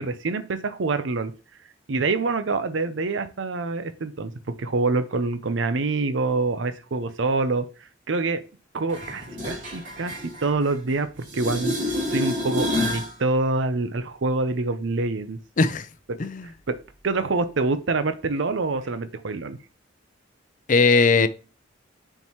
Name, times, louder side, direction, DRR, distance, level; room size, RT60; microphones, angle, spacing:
voice 1, 0.0-1.3 1.9-4.3 4.6-7.7 8.1-8.4 8.7-10.1 10.4-11.1 11.3-15.4 16.7-16.8 17.0-19.6, right 3 dB, 70° right, 0.6 m, -26 dB
sound 1, 8.9-11.0 11.2-13.1 18.9-19.0, left 1 dB, 45° right, 3.2 m, -29 dB
voice 2, 20.7-21.3, left 4 dB, 40° left, 0.5 m, -18 dB
8.8 x 4.6 x 3.0 m
head